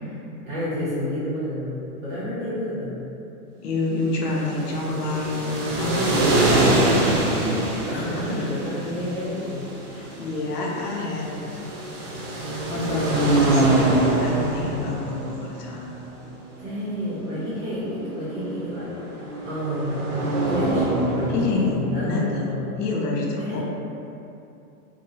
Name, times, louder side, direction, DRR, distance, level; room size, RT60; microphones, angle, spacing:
voice 1, 0.4-3.0 6.5-9.7 16.6-22.8 23.4-23.6, left 1 dB, 20° right, -12 dB, 0.8 m, -30 dB
voice 2, 2.3-2.6 3.6-6.2 7.9-8.5 10.0-11.7 12.7-15.9 21.3-22.5 22.8-23.6, left 3 dB, 85° left, -2 dB, 0.7 m, -27 dB
sound 1, 4.2-22.1, right 2 dB, 55° right, 0.7 m, -25 dB
2.9 x 2.2 x 2.7 m, 2.8 s
supercardioid pair, 165°, 46 cm